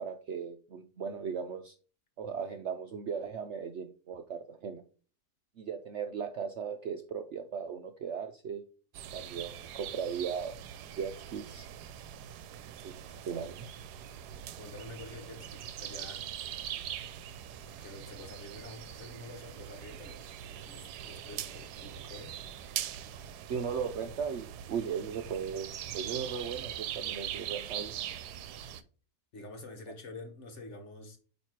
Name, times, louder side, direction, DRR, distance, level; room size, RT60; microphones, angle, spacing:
voice 1, 0.0-1.7 2.2-4.8 5.6-8.6 9.1-10.6 11.0-11.7 12.8-13.0 13.3-13.7 23.5-27.9, right 6 dB, 65° right, 0.7 m, -37 dB
sound 1, 8.9-28.8, right 10 dB, 85° right, 1.1 m, -42 dB
voice 2, 13.0-13.5 14.6-16.2 17.6-22.4 29.3-31.2, left 2 dB, 50° left, 1.5 m, -48 dB
8.8 x 3.2 x 4.5 m
omnidirectional pair, 1.7 m